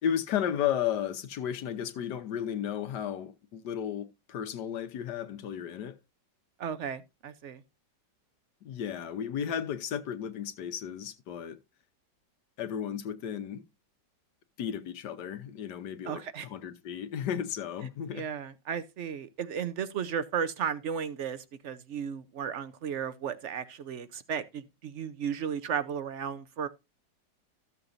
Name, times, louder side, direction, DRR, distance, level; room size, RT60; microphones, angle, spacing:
voice 1, 0.0-6.0 8.6-11.6 12.6-13.6 14.6-18.2, left 9 dB, 70° left, 1.5 m, -34 dB
voice 2, 6.6-7.6 16.0-16.5 18.1-26.7, right 7 dB, 60° right, 0.8 m, -34 dB
14.0 x 6.9 x 2.6 m
omnidirectional pair, 1.9 m